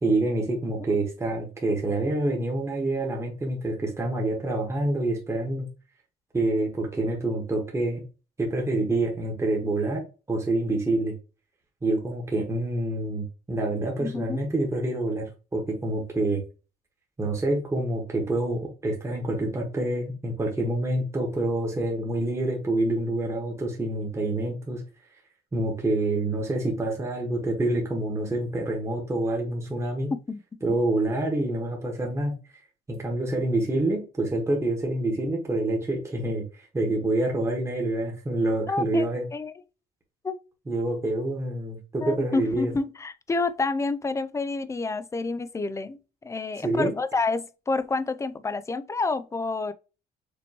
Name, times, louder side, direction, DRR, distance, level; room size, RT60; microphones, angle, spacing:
voice 1, 0.0-5.7 6.3-8.0 8.4-11.1 11.8-16.4 17.2-24.8 25.5-30.1 30.6-32.4 32.9-39.2 40.7-42.7 46.6-46.9, right 2 dB, 15° right, 1.4 m, -27 dB
voice 2, 14.0-14.4 30.3-30.4 30.7-30.8 38.7-39.5 40.2-40.4 42.0-49.7, left 3 dB, 15° left, 0.4 m, -29 dB
5.2 x 3.0 x 2.9 m
cardioid pair, 110°, 17 cm